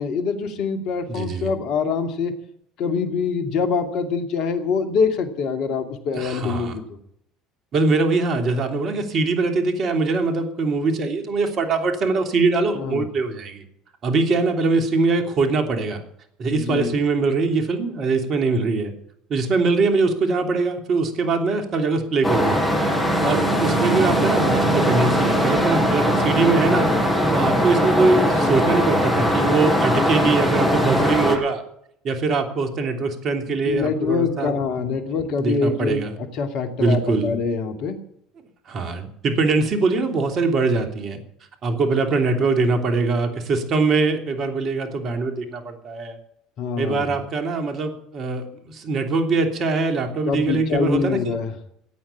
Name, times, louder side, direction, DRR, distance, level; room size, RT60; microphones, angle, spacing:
voice 1, 0.0-2.3 2.8-6.8 12.7-13.1 16.5-17.0 27.3-27.5 33.4-36.1 36.3-38.0 46.6-47.2 50.3-51.5, left 5 dB, 60° left, 7 dB, 2.5 m, -24 dB
voice 2, 1.1-1.5 6.1-6.8 7.7-13.6 14.0-16.0 16.4-18.9 19.3-22.6 22.9-26.9 27.3-31.6 32.0-34.9 35.2-36.1 36.8-37.3 38.7-41.2 41.6-46.2 46.8-51.3, right 3 dB, 45° right, 6 dB, 3.1 m, -22 dB
sound 1, 22.2-31.4, equal, 5° left, 7.1 m, -20 dB
16.5 x 9.1 x 8.5 m, 0.71 s
hypercardioid pair, 65°, 0 cm